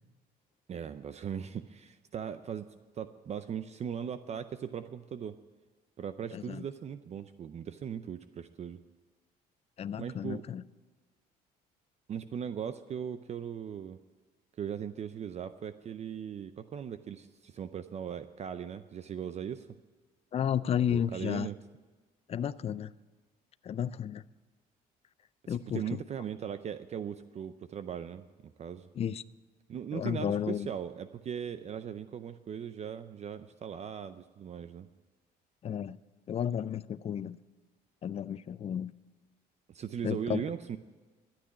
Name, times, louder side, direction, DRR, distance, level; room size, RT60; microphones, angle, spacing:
voice 1, 0.7-2.7 2.9-5.4 6.0-8.8 10.0-10.4 12.1-14.0 14.6-19.7 20.9-21.6 25.5-28.2 28.6-28.9 29.7-34.9 39.7-40.8, right 8 dB, 40° right, 11 dB, 0.6 m, -39 dB
voice 2, 6.3-6.7 9.8-10.6 20.3-21.5 22.3-22.9 23.6-24.2 25.5-26.0 29.0-29.2 29.9-30.7 35.6-36.0 36.3-37.4 38.0-38.9 40.0-40.4, left 9 dB, 35° left, 16 dB, 0.5 m, -32 dB
13.0 x 8.8 x 9.5 m, 1.4 s
cardioid pair, 110°, 17 cm